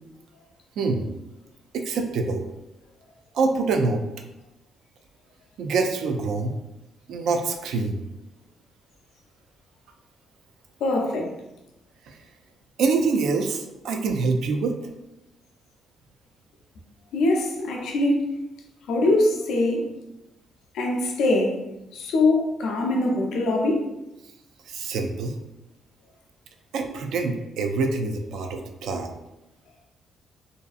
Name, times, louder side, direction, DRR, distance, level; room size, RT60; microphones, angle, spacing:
voice 1, 0.8-1.1 1.7-2.4 3.3-4.0 5.6-6.5 7.1-8.0 12.1-12.2 12.8-14.8 24.7-25.3 26.7-29.1, right 4 dB, 80° right, 0.3 m, -25 dB
voice 2, 10.8-11.3 17.1-18.3 18.9-19.9 20.7-21.6 21.9-23.9, left 2 dB, 80° left, 0.4 m, -23 dB
2.6 x 2.3 x 2.4 m
cardioid pair, 90°, 0 cm